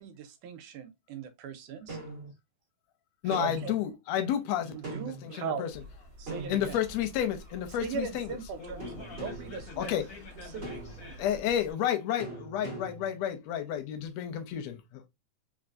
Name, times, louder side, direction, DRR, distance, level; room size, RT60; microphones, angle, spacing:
voice 1, 0.0-2.0 3.2-3.7 4.7-5.7 6.2-6.8 7.8-8.9 9.2-9.9 10.5-10.7, right 6 dB, 90° right, 2.2 m, -39 dB
sound 1, 1.9-2.3 3.3-3.8 4.8-5.3 6.3-7.1 8.8-9.6 10.6-11.2 12.2-13.2, right 2 dB, 30° right, 1.1 m, -41 dB
voice 2, 3.2-4.8 5.0-5.7 6.5-8.4 9.8-10.0 11.2-15.1, left 10 dB, 80° left, 1.6 m, -31 dB
sound 2, 5.7-11.7, equal, 60° right, 0.9 m, -49 dB
voice 3, 8.5-11.4, left 4 dB, 55° left, 0.9 m, -47 dB
4.4 x 3.2 x 2.5 m
omnidirectional pair, 3.5 m